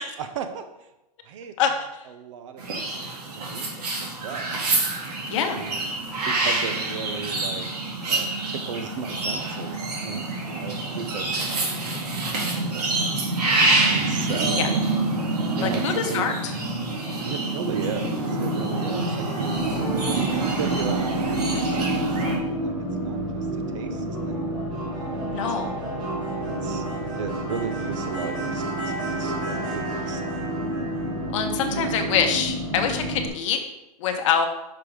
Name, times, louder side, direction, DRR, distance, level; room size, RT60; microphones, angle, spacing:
voice 1, 0.2-0.7 1.2-4.5 5.5-6.0 6.2-7.7 8.0-13.3 13.8-14.8 15.5-16.3 17.2-19.5 20.1-22.7 23.0-24.4 24.8-25.8 26.6-26.8 27.2-30.5 31.7-32.0, right 7 dB, 50° right, 9 dB, 0.8 m, -36 dB
sound 1, 2.6-22.4, right 2 dB, 80° right, 2.1 m, -26 dB
voice 2, 15.6-16.5 25.3-25.7 31.3-33.6 34.0-34.5, left 7 dB, 50° left, 5 dB, 1.0 m, -24 dB
sound 2, 16.1-23.4, left 9 dB, 25° left, 0.7 m, -38 dB
sound 3, 19.6-33.3, right 2 dB, 20° right, 1.7 m, -29 dB
5.9 x 4.7 x 5.1 m, 0.94 s
supercardioid pair, 160°, 20 cm